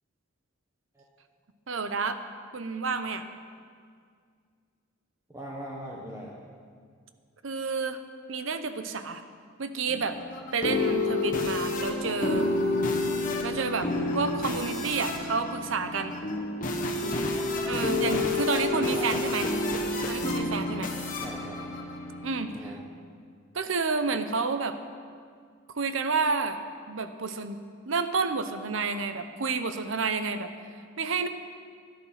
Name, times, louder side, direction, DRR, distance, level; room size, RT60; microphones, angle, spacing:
voice 1, 1.7-2.2 2.5-3.2 7.4-8.0 8.3-9.2 9.6-10.2 10.5-12.5 13.4-13.9 14.1-16.2 17.7-19.5 20.1-20.9 22.2-22.5 23.5-24.8 25.7-26.6 26.9-27.6 27.9-30.5 31.0-31.3, right 4 dB, 70° right, 9 dB, 0.8 m, -30 dB
voice 2, 5.3-6.3 18.0-18.4 18.9-19.4 21.2-21.6 22.5-22.8, equal, 15° right, -3 dB, 1.1 m, -40 dB
sound 1, 9.9-22.6, left 2 dB, 40° left, 1.4 m, -29 dB
13.0 x 10.5 x 5.9 m, 2.1 s
head